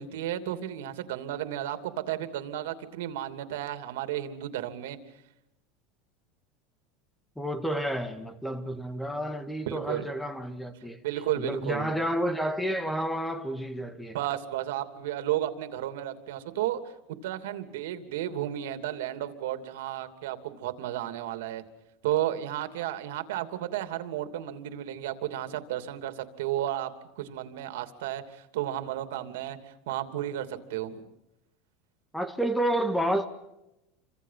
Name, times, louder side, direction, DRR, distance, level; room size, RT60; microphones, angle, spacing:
voice 1, 0.0-5.0 9.7-10.1 11.0-11.9 14.1-16.8 17.2-21.6 22.0-26.9 27.2-29.6 29.9-31.0, right 12 dB, 85° right, 2.9 m, -33 dB
voice 2, 7.4-11.0 11.4-14.2 32.1-33.2, right 1 dB, 5° left, 1.8 m, -30 dB
29.0 x 25.5 x 5.9 m
supercardioid pair, 175°, 0 cm